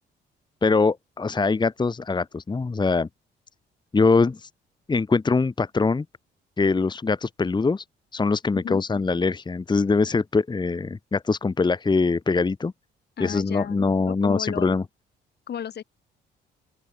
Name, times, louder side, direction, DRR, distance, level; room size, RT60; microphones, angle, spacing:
voice 1, 0.6-3.1 3.9-4.5 4.9-6.0 6.6-7.8 8.1-12.7 13.2-14.8, left 4 dB, 20° left, 1.2 m, -23 dB
voice 2, 8.5-8.8 13.2-14.8 15.5-15.8, left 9 dB, 55° left, 2.2 m, -34 dB
open air
cardioid pair, 90°, 20 cm